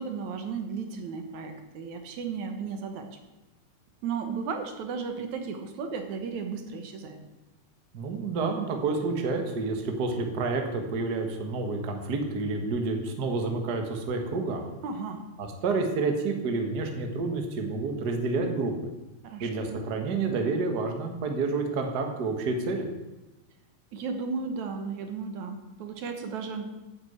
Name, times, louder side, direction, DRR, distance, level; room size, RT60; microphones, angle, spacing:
voice 1, 0.0-3.1 4.0-7.2 14.8-15.2 19.2-19.8 23.9-26.7, right 5 dB, 75° right, 6 dB, 2.6 m, -34 dB
voice 2, 7.9-14.6 15.4-18.7 19.4-22.8, right 3 dB, 40° right, 4 dB, 1.7 m, -29 dB
9.6 x 8.9 x 8.0 m, 1.1 s
omnidirectional pair, 3.4 m